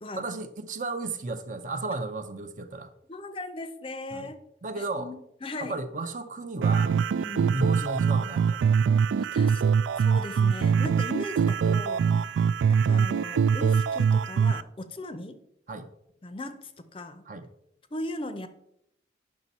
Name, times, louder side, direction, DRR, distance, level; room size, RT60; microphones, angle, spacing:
voice 1, 0.2-2.9 4.1-4.3 4.6-5.1 5.6-6.9 7.5-8.6 15.7-15.9 17.3-17.5, right 2 dB, 40° right, 9 dB, 0.6 m, -33 dB
voice 2, 3.1-4.4 4.8-5.8 7.2-7.6 9.2-9.6 10.0-12.4 12.7-15.4 16.2-17.2 17.9-18.5, left 1 dB, 30° left, 10 dB, 0.5 m, -38 dB
sound 1, 6.6-14.6, right 6 dB, 85° right, 0.3 m, -23 dB
9.4 x 6.0 x 4.2 m, 0.79 s
head